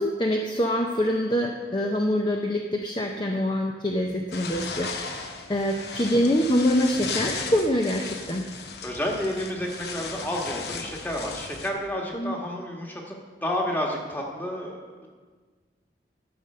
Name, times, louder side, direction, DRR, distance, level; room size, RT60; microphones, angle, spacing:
voice 1, 0.0-8.5 12.1-12.3, equal, 25° left, 2 dB, 0.6 m, -25 dB
sound 1, 4.3-11.7, left 4 dB, 70° left, 1.0 m, -36 dB
voice 2, 8.8-15.1, equal, 10° left, -1 dB, 1.5 m, -31 dB
12.0 x 5.4 x 6.7 m, 1.4 s
head